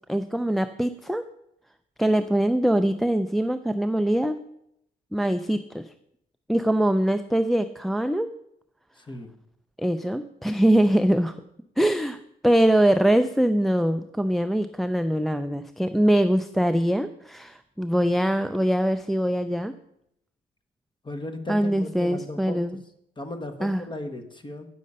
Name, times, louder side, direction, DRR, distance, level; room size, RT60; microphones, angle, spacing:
voice 1, 0.1-1.2 2.0-4.4 5.1-5.8 6.5-8.3 9.8-11.3 11.8-12.2 12.4-19.7 21.5-22.8 23.6-23.8, right 1 dB, ahead, 9 dB, 0.3 m, -23 dB
voice 2, 9.0-9.3 21.0-22.6 23.2-24.7, left 2 dB, 25° left, 8 dB, 1.2 m, -36 dB
8.6 x 6.3 x 5.4 m, 0.77 s
cardioid pair, 90°, 20 cm